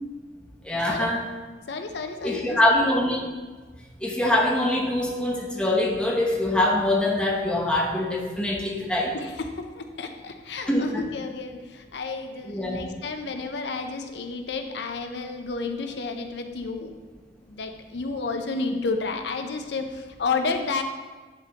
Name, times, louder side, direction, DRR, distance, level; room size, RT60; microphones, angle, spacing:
voice 1, 0.6-1.2 2.2-3.2 4.0-9.1 10.7-11.0 12.5-12.8, left 1 dB, 5° left, -3 dB, 0.9 m, -23 dB
voice 2, 1.7-2.6 9.1-16.9 17.4-20.8, left 4 dB, 65° left, 6 dB, 0.6 m, -31 dB
10.5 x 3.6 x 2.9 m, 1.4 s
head